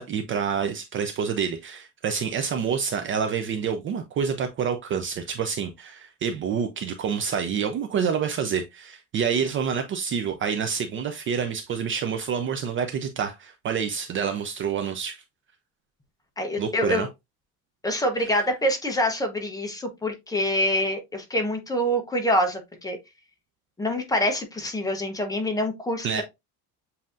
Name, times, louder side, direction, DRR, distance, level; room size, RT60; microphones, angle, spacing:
voice 1, 0.0-15.2 16.6-17.1 26.0-26.2, right 7 dB, 35° right, 0.5 m, -27 dB
voice 2, 16.4-17.1 17.8-23.0 23.8-26.2, left 1 dB, 10° left, 0.8 m, -26 dB
7.4 x 2.7 x 2.4 m
cardioid pair, 160°, 36 cm